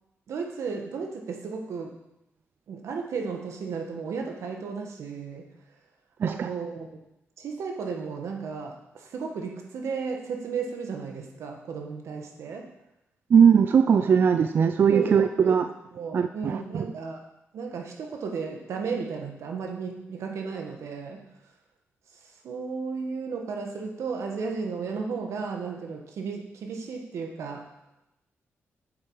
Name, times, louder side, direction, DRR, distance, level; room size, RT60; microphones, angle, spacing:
voice 1, 0.3-2.0 2.7-5.6 6.3-7.0 7.4-12.7 14.9-15.6 15.9-17.2 17.5-21.3 22.1-27.7, right 5 dB, 85° right, 2 dB, 1.6 m, -34 dB
voice 2, 13.3-15.6 16.1-16.8, right 7 dB, 45° right, 9 dB, 0.4 m, -20 dB
8.7 x 7.7 x 4.9 m, 0.88 s
wide cardioid pair, 165°, 5 cm